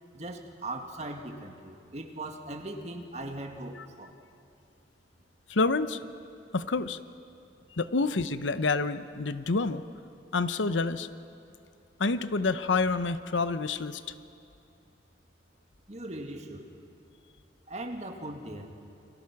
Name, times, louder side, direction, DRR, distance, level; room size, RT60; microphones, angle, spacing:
voice 1, 0.1-4.1 15.9-16.7 17.7-18.8, right 1 dB, 35° right, 4 dB, 1.9 m, -39 dB
voice 2, 5.5-6.0 6.5-7.0 7.7-9.8 10.3-11.1 12.0-14.0, left 3 dB, 85° left, 13 dB, 0.8 m, -28 dB
30.0 x 24.0 x 6.0 m, 2.6 s
head